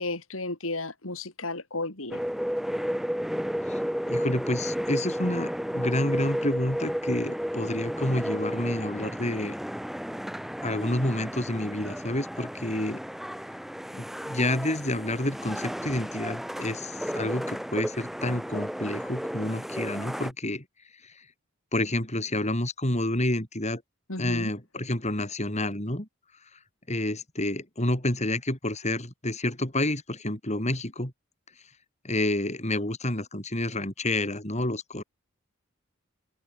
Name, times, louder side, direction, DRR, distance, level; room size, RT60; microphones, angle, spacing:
voice 1, 0.0-2.2 24.1-24.5, left 2 dB, 85° left, 5.5 m, -33 dB
sound 1, 2.1-20.3, equal, ahead, 2.3 m, -33 dB
voice 2, 4.1-9.5 10.6-13.0 13.9-20.6 21.7-23.8 24.2-26.1 26.9-31.1 32.0-35.0, left 1 dB, 35° left, 6.0 m, -29 dB
open air
head